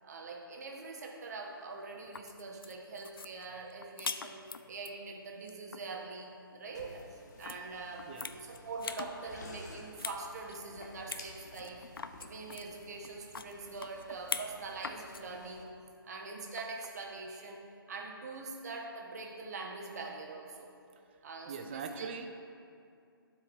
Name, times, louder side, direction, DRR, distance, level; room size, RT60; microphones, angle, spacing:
voice 1, 0.0-7.1 7.4-11.8 12.2-15.7 16.0-20.7 21.2-22.1, right 3 dB, 45° right, 0 dB, 1.1 m, -43 dB
sound 1, 2.0-4.9 5.3-5.8 7.4-7.6 8.0-9.1 9.5-10.2 10.5-10.6 11.1-11.3 11.5-14.5 14.8-15.2 16.5-16.9, left 5 dB, 70° left, 0.4 m, -41 dB
sound 2, 6.7-15.6, left 1 dB, 45° left, 1.1 m, -54 dB
voice 2, 21.5-22.3, right 6 dB, 25° right, 6 dB, 0.5 m, -41 dB
12.0 x 4.8 x 3.5 m, 2.4 s
figure-of-eight pair, 140°, 12 cm